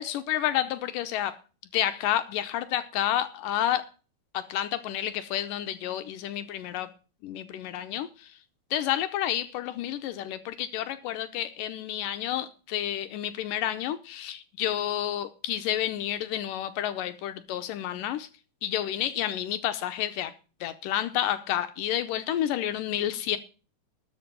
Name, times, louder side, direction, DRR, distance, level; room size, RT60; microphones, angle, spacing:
voice 1, 0.0-1.4 1.7-3.8 4.3-6.9 7.2-8.4 8.7-18.3 18.6-20.3 20.6-23.4, left 11 dB, 80° left, 2.3 m, -30 dB
13.0 x 5.3 x 8.9 m
omnidirectional pair, 3.9 m